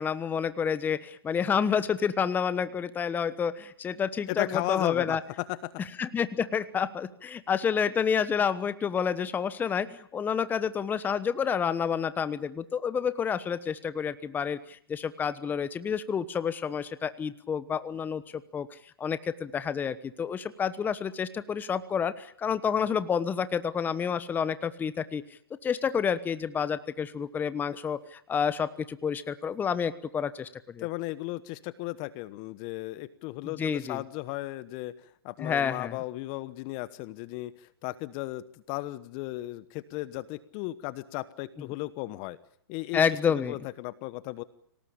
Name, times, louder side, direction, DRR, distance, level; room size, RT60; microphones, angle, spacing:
voice 1, 0.0-5.2 6.0-25.2 25.6-30.9 33.4-34.0 35.4-36.0 42.9-43.6, left 7 dB, 15° left, 14 dB, 1.1 m, -29 dB
voice 2, 4.3-5.7 30.8-34.9 35.2-42.4 42.7-43.0 43.5-44.4, left 18 dB, 35° left, 17 dB, 1.1 m, -35 dB
26.0 x 18.5 x 8.8 m, 0.64 s
hypercardioid pair, 135°, 13 cm